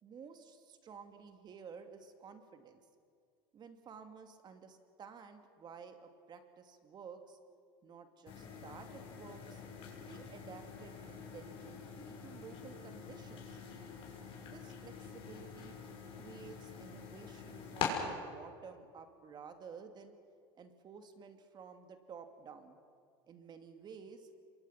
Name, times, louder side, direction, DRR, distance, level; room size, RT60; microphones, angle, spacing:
voice 1, 0.0-2.8 3.5-7.4 7.8-9.6 10.1-13.6 14.4-15.8 16.2-20.1 20.5-22.8 23.3-24.3, right 6 dB, 35° right, 7 dB, 2.4 m, -53 dB
sound 1, 8.3-17.9, left 8 dB, 45° left, 6.2 m, -45 dB
27.5 x 22.5 x 5.9 m, 2.2 s
supercardioid pair, 110°, 13 cm